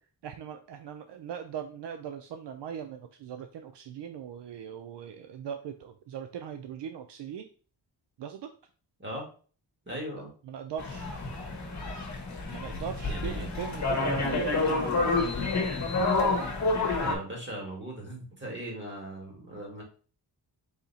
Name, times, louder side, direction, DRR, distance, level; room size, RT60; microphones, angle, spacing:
voice 1, 0.2-7.5 8.2-8.5 10.1-11.1 12.5-15.5, right 8 dB, 70° right, 7 dB, 0.5 m, -39 dB
voice 2, 9.9-10.3 13.0-13.5 16.9-19.8, right 1 dB, 25° right, -1 dB, 2.1 m, -39 dB
sound 1, 10.8-17.1, left 3 dB, 40° left, 1.3 m, -29 dB
4.1 x 2.8 x 4.0 m, 0.40 s
cardioid pair, 90°, 43 cm